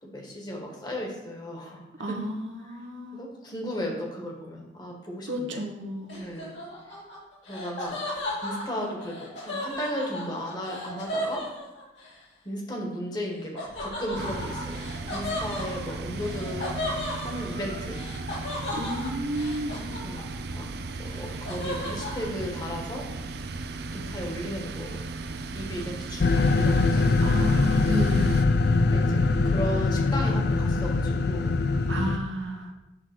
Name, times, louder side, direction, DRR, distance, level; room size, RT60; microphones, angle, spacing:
voice 1, 0.0-2.2 2.6-2.8 3.1-5.6 6.2-6.5 7.5-11.4 12.4-14.8 15.1-16.8 17.2-18.0 20.0-20.3 20.5-20.7 21.0-23.1 23.9-25.0 25.5-27.5 28.9-31.6, equal, 20° left, 0 dB, 1.5 m, -35 dB
voice 2, 2.0-3.2 5.3-6.2 18.7-19.8 27.2-28.5 31.9-32.7, right 1 dB, 85° right, 2 dB, 1.2 m, -32 dB
Laughter, 6.1-12.1 13.6-20.5 20.8-22.3, left 1 dB, 80° left, 2.5 m, -35 dB
sound 1, 14.1-28.4, right 3 dB, 60° right, 0.5 m, -36 dB
sound 2, 26.2-32.2, left 3 dB, 55° left, 0.4 m, -23 dB
8.0 x 3.7 x 6.0 m, 0.98 s
head